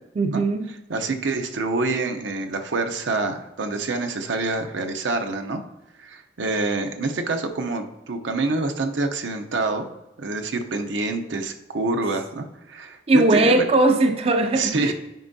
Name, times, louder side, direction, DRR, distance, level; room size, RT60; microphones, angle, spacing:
voice 1, 0.2-0.7 13.1-14.9, right 2 dB, 35° right, 7 dB, 0.4 m, -19 dB
voice 2, 0.9-5.6 6.0-9.9 10.2-13.7 14.5-14.9, right 3 dB, 85° right, 5 dB, 0.7 m, -26 dB
9.2 x 5.3 x 2.7 m, 0.98 s
head